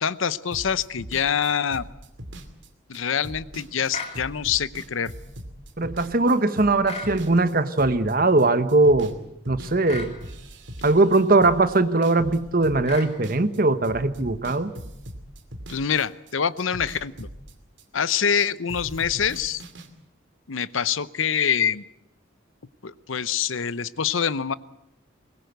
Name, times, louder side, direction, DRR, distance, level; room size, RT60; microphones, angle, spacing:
voice 1, 0.0-1.9 2.9-5.1 15.7-17.3 17.9-19.6 20.5-21.8 22.8-24.5, left 7 dB, 80° left, 17 dB, 0.7 m, -25 dB
sound 1, 0.5-9.2 9.4-13.6 13.8-16.3 16.6-18.4 18.7-19.9, equal, 65° right, 2.6 m, -40 dB
sound 2, 3.9-4.2 6.8-7.2 9.9-10.1 12.8-13.1, left 3 dB, 30° left, 3.2 m, -34 dB
voice 2, 5.8-9.1 9.5-10.1 10.8-14.7, right 2 dB, 45° right, 12 dB, 1.1 m, -20 dB
22.0 x 20.0 x 8.0 m, 0.82 s
head